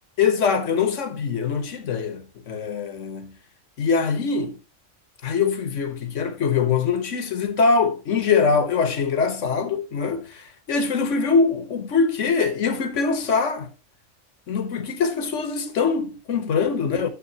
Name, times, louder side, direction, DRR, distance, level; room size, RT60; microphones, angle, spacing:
voice 1, 0.2-3.4 3.8-4.6 5.2-13.7 14.5-17.1, left 5 dB, 70° left, 1.6 m, -23 dB
10.0 x 7.7 x 2.9 m
omnidirectional pair, 1.3 m